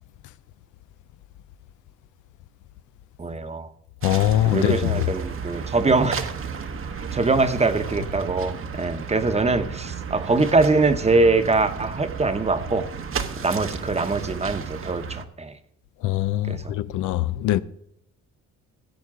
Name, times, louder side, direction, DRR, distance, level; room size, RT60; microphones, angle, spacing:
voice 1, 3.2-3.7 4.4-6.2 7.1-12.9 13.4-15.5 16.5-16.7, right 3 dB, 20° right, 0.9 m, -23 dB
voice 2, 4.0-5.0 16.0-17.6, left 14 dB, 85° left, 0.5 m, -22 dB
sound 1, 4.0-15.2, right 6 dB, 45° right, 1.0 m, -33 dB
15.5 x 8.0 x 3.7 m
cardioid pair, 90°, 30 cm